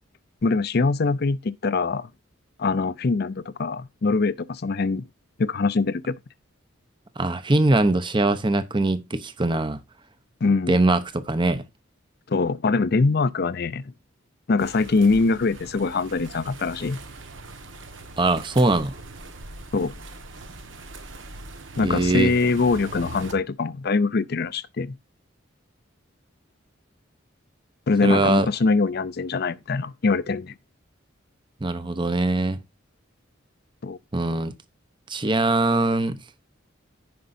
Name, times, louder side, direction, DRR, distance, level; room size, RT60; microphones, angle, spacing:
voice 1, 0.4-2.1 2.6-5.1 5.4-6.1 10.4-10.8 12.3-13.9 14.5-17.0 19.7-19.9 21.8-24.9 27.9-30.5 33.8-34.0, left 4 dB, 50° left, 0.5 m, -23 dB
voice 2, 7.2-9.8 10.7-11.6 18.2-18.9 21.8-22.3 28.0-28.5 31.6-32.6 34.1-34.5 35.1-36.2, right 2 dB, 25° right, 0.8 m, -22 dB
sound 1, 14.6-23.3, right 2 dB, 70° right, 1.5 m, -41 dB
15.5 x 5.2 x 2.6 m
head